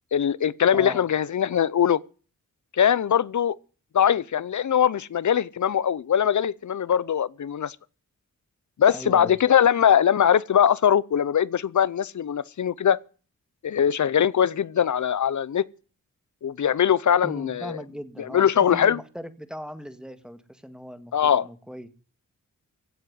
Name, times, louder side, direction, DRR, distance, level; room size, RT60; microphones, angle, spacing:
voice 1, 0.1-2.0 2.7-3.6 3.9-7.8 8.8-13.0 13.6-15.6 16.4-17.8 18.2-19.0 21.1-21.5, left 8 dB, 65° left, 0.7 m, -21 dB
voice 2, 0.7-1.0 8.9-9.4 17.2-21.9, equal, ahead, 1.9 m, -38 dB
16.5 x 7.6 x 9.5 m
wide cardioid pair, 75°, 32 cm